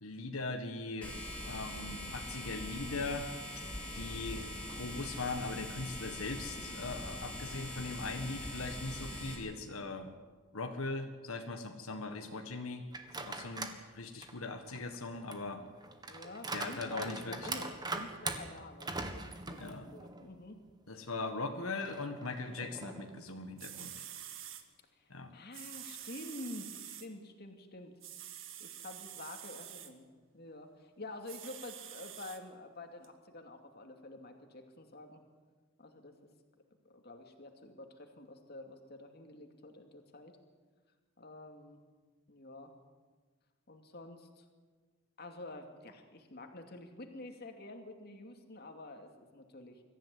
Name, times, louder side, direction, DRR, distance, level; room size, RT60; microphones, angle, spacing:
voice 1, 0.0-1.2 1.4-3.3 3.9-10.1 10.5-12.8 13.2-15.6 16.5-17.6 19.6-19.9 20.9-24.0 25.1-25.3, left 3 dB, 85° left, 5 dB, 1.6 m, -40 dB
sound 1, 1.0-9.3, left 1 dB, 5° left, 4.8 m, -42 dB
sound 2, 12.9-13.8 14.2-20.3 20.7-20.8 21.8-23.2, right 3 dB, 20° right, 1.6 m, -42 dB
voice 2, 15.2-15.7 16.1-19.2 19.5-20.6 25.0-27.9 28.6-30.1 30.3-35.2 35.8-36.3 36.8-40.3 41.2-41.8 42.3-42.7 43.7-44.5 45.2-49.8, left 2 dB, 50° left, 4 dB, 2.5 m, -48 dB
sound 3, 23.3-23.4 23.6-24.6 25.5-27.1 28.0-29.9 31.3-32.4 33.0-33.1, right 10 dB, 65° right, 1.8 m, -47 dB
23.5 x 14.5 x 9.6 m, 1.4 s
head